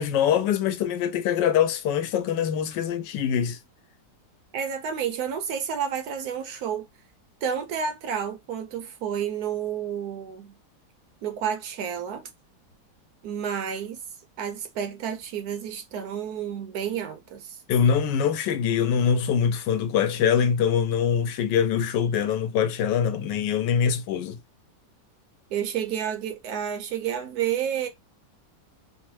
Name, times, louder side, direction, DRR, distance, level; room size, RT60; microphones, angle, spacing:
voice 1, 0.0-3.6 17.7-24.4, left 8 dB, 80° left, 1.2 m, -23 dB
voice 2, 4.5-6.9 7.4-10.6 11.2-12.3 13.2-14.0 14.4-17.6 25.5-27.9, right 8 dB, 70° right, 1.0 m, -30 dB
3.1 x 2.1 x 3.0 m
omnidirectional pair, 1.9 m